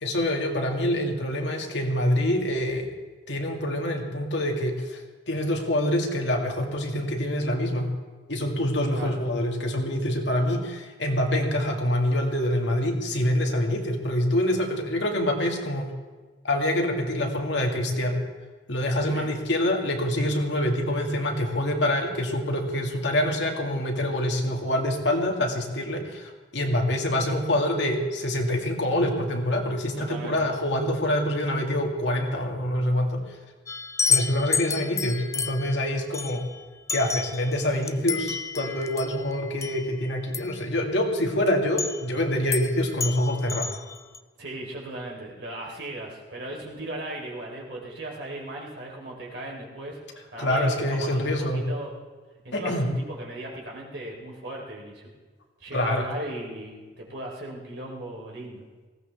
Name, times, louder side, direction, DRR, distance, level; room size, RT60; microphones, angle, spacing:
voice 1, 0.0-2.9 3.3-5.0 5.3-7.9 8.3-15.9 16.4-18.2 18.7-33.4 34.1-36.4 36.9-43.7 50.4-51.7 52.5-52.9 55.7-56.1, left 1 dB, 70° left, 2 dB, 2.0 m, -26 dB
voice 2, 29.9-30.4 44.4-50.0 50.3-51.9 52.4-55.1 55.6-58.7, right 1 dB, 65° right, -2 dB, 3.6 m, -37 dB
sound 1, 33.7-40.6 41.8-42.1 42.5-42.7 43.0-44.2, left 5 dB, 15° left, 0.3 m, -30 dB
19.5 x 16.0 x 3.4 m, 1.3 s
head